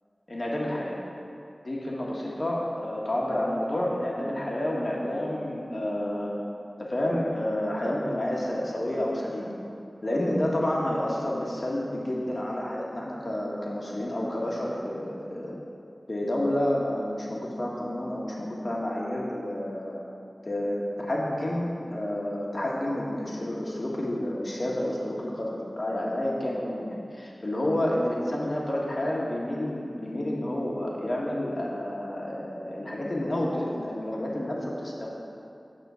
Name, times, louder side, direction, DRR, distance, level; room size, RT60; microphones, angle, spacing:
voice 1, 0.3-1.0 1.6-6.3 6.8-9.5 10.0-15.5 16.1-20.0 20.4-35.1, left 1 dB, 50° left, -4 dB, 1.4 m, -29 dB
9.0 x 3.8 x 6.8 m, 2.6 s
wide cardioid pair, 55°, 0 cm